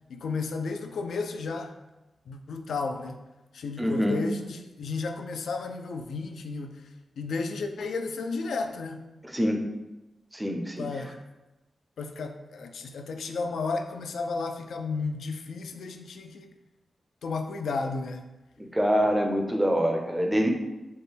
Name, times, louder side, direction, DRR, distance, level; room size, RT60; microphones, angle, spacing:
voice 1, 0.1-1.8 2.3-3.2 3.5-9.1 10.8-11.1 12.0-16.5 17.2-18.3, left 4 dB, 90° left, 6 dB, 0.3 m, -33 dB
voice 2, 3.8-4.2 9.3-9.6 10.3-10.9 18.6-20.5, equal, 10° right, 3 dB, 0.5 m, -25 dB
4.2 x 2.2 x 3.3 m, 1.0 s
wide cardioid pair, 110°, 0 cm